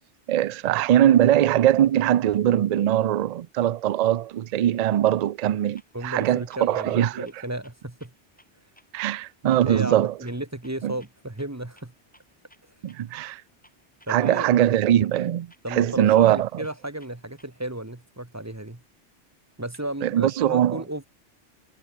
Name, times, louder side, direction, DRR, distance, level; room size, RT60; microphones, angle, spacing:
voice 1, 0.3-7.3 8.9-10.1 10.8-10.9 12.8-13.4 14.1-16.5 20.0-20.8, right 11 dB, 65° right, 0.4 m, -21 dB
Clock, 5.8-17.8, equal, 5° left, 7.1 m, -62 dB
voice 2, 5.9-8.1 9.6-11.9 14.1-14.5 15.6-18.8 19.6-21.0, right 1 dB, 15° right, 1.3 m, -34 dB
omnidirectional pair, 1.2 m